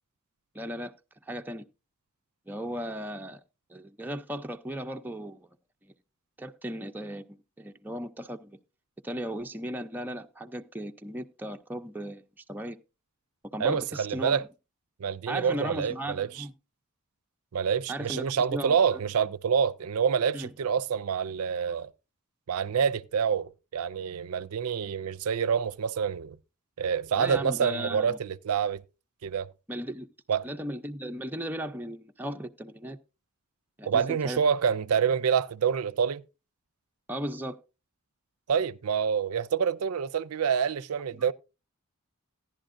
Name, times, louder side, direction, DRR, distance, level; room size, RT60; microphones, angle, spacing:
voice 1, 0.5-0.9 1.3-1.6 2.5-3.4 3.7-5.5 5.8-5.9 6.4-8.6 9.0-12.2 12.5-12.8 13.5-14.4 15.3-16.5 17.9-19.0 20.3-20.5 27.2-28.2 29.7-30.1 30.4-33.0 33.8-34.4 37.1-37.6 41.1-41.3, right 1 dB, 10° right, 0.5 m, -36 dB
voice 2, 13.6-14.4 15.0-16.4 17.5-21.9 22.5-26.4 26.8-28.8 29.2-29.5 30.3-30.5 33.9-36.2 38.5-41.3, right 7 dB, 75° right, 0.4 m, -27 dB
15.5 x 11.0 x 2.5 m
head